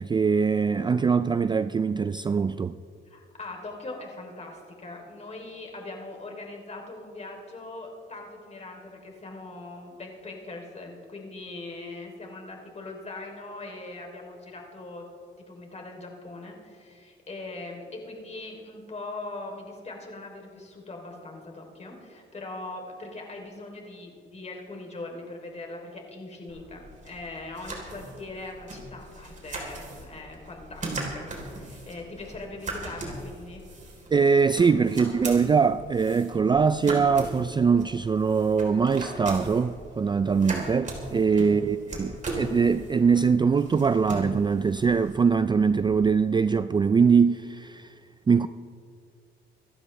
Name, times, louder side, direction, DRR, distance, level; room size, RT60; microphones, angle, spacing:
voice 1, 0.0-2.8 34.1-47.9 48.3-48.5, right 5 dB, 25° right, 0.3 m, -22 dB
voice 2, 3.0-15.1 15.4-33.6 41.1-41.5, left 2 dB, 35° left, 3.3 m, -41 dB
sound 1, 26.5-46.1, right 2 dB, 40° right, 3.8 m, -39 dB
25.5 x 12.0 x 3.3 m
cardioid pair, 90°, 20 cm